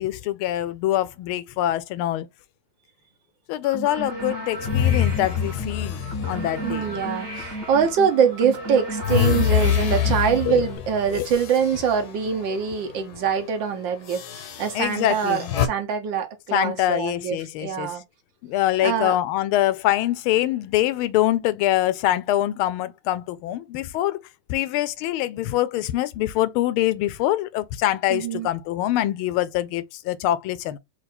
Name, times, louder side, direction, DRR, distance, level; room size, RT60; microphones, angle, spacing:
voice 1, 0.0-2.3 3.5-7.0 10.5-10.7 11.1-11.3 14.7-15.5 16.5-17.9 18.4-24.2 24.5-30.8, left 14 dB, 85° left, 1.5 m, -24 dB
sound 1, 3.6-10.8, right 1 dB, 35° right, 1.3 m, -34 dB
sound 2, 4.6-7.9 8.4-12.7 13.0-13.3 14.1-15.7, left 9 dB, 60° left, 1.1 m, -26 dB
voice 2, 6.6-18.0 18.8-19.2 28.1-28.5, right 7 dB, 65° right, 1.4 m, -24 dB
4.6 x 2.5 x 4.1 m
omnidirectional pair, 2.3 m